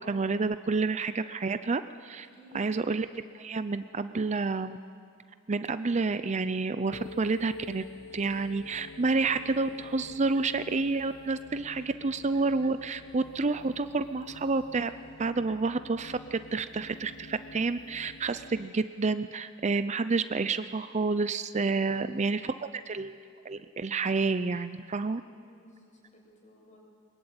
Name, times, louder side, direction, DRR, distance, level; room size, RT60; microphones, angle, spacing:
voice 1, 0.1-2.3 2.5-4.8 5.5-7.8 8.1-14.9 15.2-23.2 23.4-25.2, right 3 dB, 35° right, 12 dB, 0.5 m, -29 dB
voice 2, 2.3-2.6 25.4-26.8, equal, 35° left, -2 dB, 7.3 m, -56 dB
sound 1, 6.9-18.7, left 3 dB, 90° left, 0.9 m, -48 dB
22.5 x 22.0 x 8.9 m, 2.4 s
head